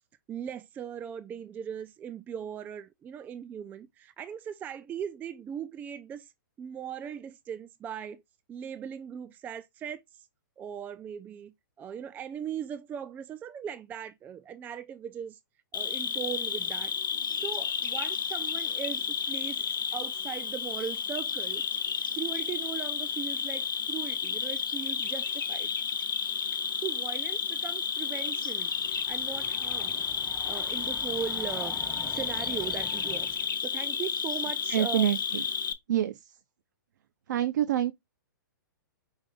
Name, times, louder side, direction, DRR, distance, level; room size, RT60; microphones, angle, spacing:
voice 1, 0.3-6.3 6.6-8.2 8.5-10.3 10.6-15.4 15.7-16.9 17.3-21.6 22.1-25.7 26.8-31.8 32.1-33.3 33.6-35.1, right 8 dB, 15° right, 0.3 m, -39 dB
Cricket, 15.7-35.7, left 7 dB, 80° left, 0.8 m, -32 dB
Train, 28.6-33.5, left 1 dB, 5° left, 0.7 m, -46 dB
voice 2, 34.7-35.5 35.9-36.4 37.3-37.9, right 11 dB, 60° right, 0.6 m, -27 dB
5.2 x 2.6 x 3.8 m
hypercardioid pair, 125°, 11 cm